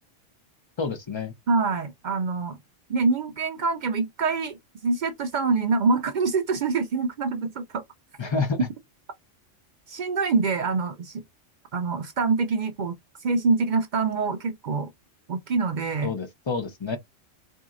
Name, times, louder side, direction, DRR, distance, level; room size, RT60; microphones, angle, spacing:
voice 1, 0.8-1.3 8.2-8.6 16.0-17.0, left 4 dB, 45° left, 0.3 m, -28 dB
voice 2, 1.5-2.6 2.9-4.6 4.8-7.8 9.9-11.2 11.7-12.9 13.2-14.9 15.3-16.1, right 4 dB, 70° right, 0.4 m, -25 dB
3.9 x 2.7 x 2.4 m
omnidirectional pair, 1.3 m